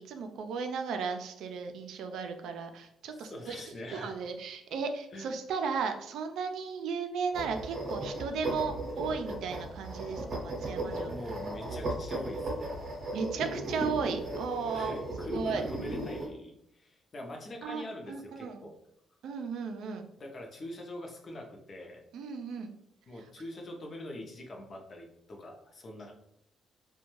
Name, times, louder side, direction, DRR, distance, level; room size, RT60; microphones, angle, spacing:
voice 1, 0.0-3.6 3.9-11.1 13.1-15.0 15.2-15.6 17.6-18.6 19.2-20.1 22.1-22.7, right 5 dB, 80° right, 6 dB, 0.3 m, -35 dB
voice 2, 3.1-4.2 5.1-5.3 11.1-12.7 13.0-13.2 14.7-18.7 20.2-22.0 23.1-26.1, left 1 dB, 40° left, 1 dB, 0.6 m, -44 dB
sound 1, 7.3-16.3, right 1 dB, 50° right, 0.7 m, -36 dB
2.4 x 2.2 x 3.0 m, 0.77 s
cardioid pair, 90°, 0 cm